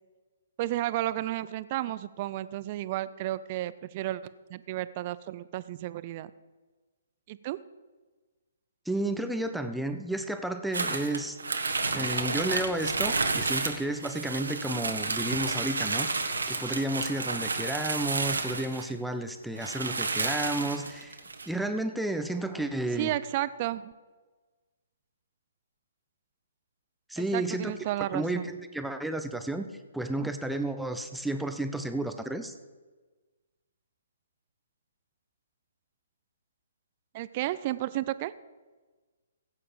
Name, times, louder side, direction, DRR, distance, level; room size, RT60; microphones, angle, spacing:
voice 1, 0.6-4.2 4.5-6.3 7.3-7.6 23.0-23.9 27.3-28.5 37.1-38.3, right 15 dB, 35° right, 16 dB, 0.6 m, -32 dB
voice 2, 8.9-11.4 11.9-21.2 21.5-23.1 27.1-27.7 28.1-29.7 29.9-32.5, right 1 dB, ahead, 7 dB, 0.8 m, -32 dB
sound 1, 10.7-18.9 19.3-19.4 19.6-21.5, right 3 dB, 75° right, 1.5 m, -31 dB
16.5 x 8.6 x 5.2 m, 1.3 s
figure-of-eight pair, 130°, 0 cm